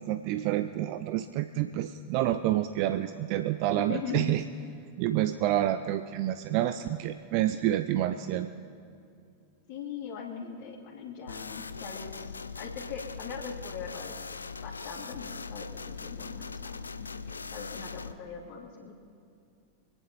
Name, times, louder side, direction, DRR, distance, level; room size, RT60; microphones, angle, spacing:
voice 1, 0.0-4.4 5.0-8.5, right 13 dB, 45° right, 10 dB, 0.5 m, -28 dB
voice 2, 3.8-4.3 9.7-14.1 14.6-17.2 17.5-18.9, left 6 dB, 40° left, -6 dB, 2.3 m, -40 dB
sound 1, 11.3-18.1, left 4 dB, 75° left, 0.5 m, -40 dB
25.5 x 9.8 x 4.5 m, 2.5 s
figure-of-eight pair, 90°, 0 cm